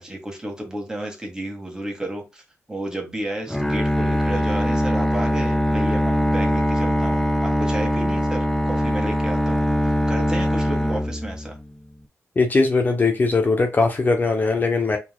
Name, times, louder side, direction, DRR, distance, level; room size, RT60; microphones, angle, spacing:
voice 1, 0.0-2.4 2.7-11.6, right 1 dB, 15° right, 1.7 m, -32 dB
Bowed string instrument, 3.5-11.7, equal, 5° left, 0.8 m, -22 dB
voice 2, 12.4-15.0, left 3 dB, 35° left, 0.8 m, -20 dB
4.6 x 4.0 x 2.3 m
cardioid pair, 90°, 5 cm